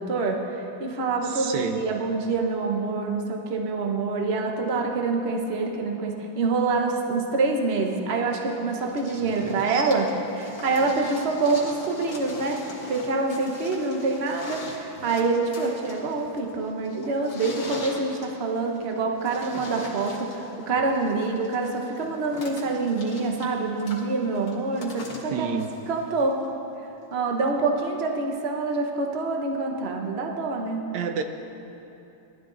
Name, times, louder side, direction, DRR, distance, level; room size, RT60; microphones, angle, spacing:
voice 1, 0.0-10.1 10.3-12.6 12.9-25.5 25.9-26.4 27.1-30.8, right 3 dB, 40° right, 2 dB, 1.2 m, -26 dB
voice 2, 1.2-1.8 9.2-9.9 25.3-25.7 30.9-31.2, right 6 dB, 70° right, 6 dB, 1.2 m, -30 dB
sound 1, 8.4-26.4 27.5-27.6, left 2 dB, 80° left, 2.5 m, -42 dB
17.5 x 12.0 x 4.0 m, 2.9 s
omnidirectional pair, 2.0 m